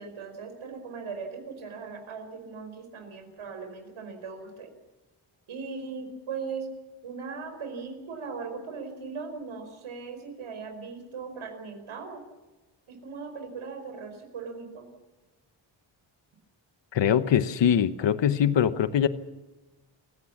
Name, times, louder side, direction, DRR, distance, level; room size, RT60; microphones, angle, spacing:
voice 1, 0.0-4.7 5.5-6.7 7.0-12.2 12.9-14.9, right 5 dB, 85° right, 5 dB, 4.9 m, -39 dB
voice 2, 16.9-19.1, left 9 dB, 65° left, 12 dB, 1.1 m, -22 dB
28.0 x 16.5 x 7.3 m, 1.1 s
wide cardioid pair, 155°, 47 cm